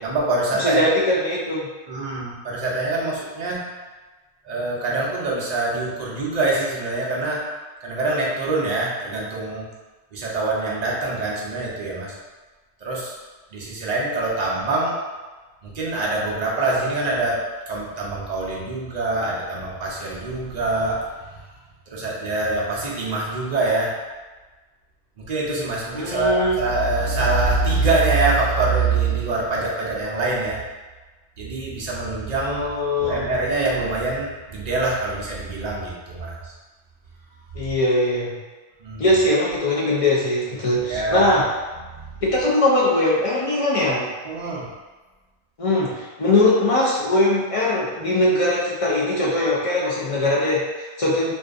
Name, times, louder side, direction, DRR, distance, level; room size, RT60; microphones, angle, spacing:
voice 1, 0.0-1.0 1.9-3.6 4.4-7.4 7.8-9.7 10.1-12.1 12.8-13.1 13.5-15.0 15.6-21.5 21.9-24.0 25.2-30.6 31.4-32.7 33.0-36.5 38.8-39.1 40.9-41.3 41.9-42.2 44.2-44.7, right 3 dB, 50° right, -4 dB, 0.5 m, -24 dB
voice 2, 0.6-1.6 25.9-26.6 32.4-33.2 37.5-38.4 39.0-41.4 42.2-44.1 45.6-51.3, left 1 dB, 60° left, -6 dB, 0.3 m, -21 dB
2.5 x 2.3 x 2.4 m, 1.3 s
omnidirectional pair, 1.1 m